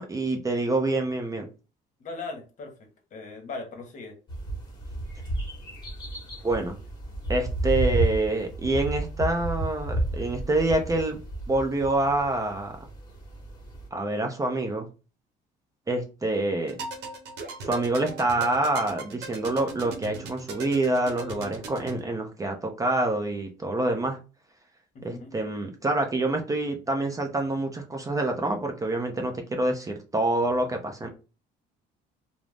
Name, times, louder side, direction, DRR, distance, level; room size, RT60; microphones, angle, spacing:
voice 1, 0.0-1.4 6.4-6.8 7.3-11.2 11.5-12.7 13.9-14.9 15.9-16.8 17.6-24.2 25.0-31.1, right 2 dB, 20° right, 0.5 m, -26 dB
voice 2, 2.0-2.7 3.1-4.2 24.9-25.3, left 3 dB, 45° left, 0.9 m, -38 dB
sound 1, 4.3-13.9, right 2 dB, 25° left, 1.1 m, -32 dB
sound 2, 16.7-22.0, right 3 dB, 85° right, 0.7 m, -39 dB
2.4 x 2.0 x 3.3 m
cardioid pair, 110°, 17 cm